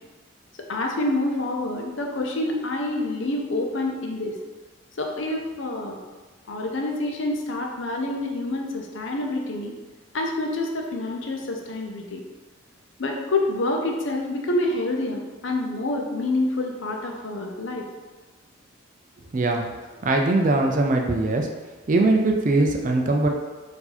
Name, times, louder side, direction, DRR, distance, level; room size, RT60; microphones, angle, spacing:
voice 1, 0.7-4.3 5.0-6.0 6.5-9.8 10.1-12.2 13.0-17.8, left 2 dB, 65° left, 1 dB, 0.7 m, -27 dB
voice 2, 19.3-19.7 20.0-21.5 21.9-23.3, right 2 dB, 40° right, 2 dB, 0.4 m, -21 dB
4.6 x 2.7 x 4.2 m, 1.3 s
head